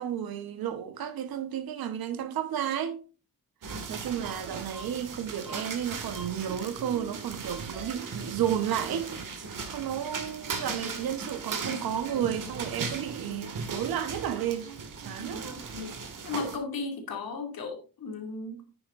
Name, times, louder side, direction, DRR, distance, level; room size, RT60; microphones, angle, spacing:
voice 1, 0.0-3.0 3.9-14.7 15.0-15.4, right 10 dB, 85° right, 1.2 m, -32 dB
sound 1, 3.6-16.6, right 4 dB, 60° right, 2.1 m, -37 dB
voice 2, 16.2-18.8, left 4 dB, 80° left, 2.5 m, -36 dB
9.5 x 9.3 x 2.6 m
supercardioid pair, 55°, 35 cm